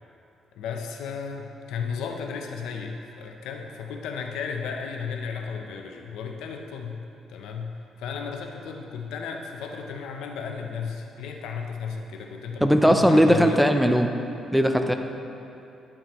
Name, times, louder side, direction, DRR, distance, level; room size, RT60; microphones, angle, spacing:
voice 1, 0.5-7.0 7.3-13.6, left 6 dB, 90° left, 3 dB, 0.6 m, -34 dB
voice 2, 12.6-14.1 14.5-14.9, equal, ahead, 6 dB, 0.5 m, -18 dB
10.0 x 7.4 x 3.0 m, 2.8 s
cardioid pair, 90°, 0 cm